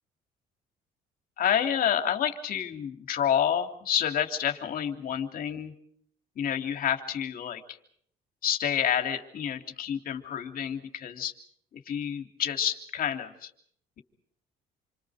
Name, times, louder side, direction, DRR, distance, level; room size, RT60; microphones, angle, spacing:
voice 1, 1.4-5.7 6.3-7.8 8.4-11.3 11.7-13.5, left 9 dB, 60° left, 5 dB, 3.2 m, -29 dB
28.5 x 25.0 x 5.1 m, 0.65 s
cardioid pair, 110°, 17 cm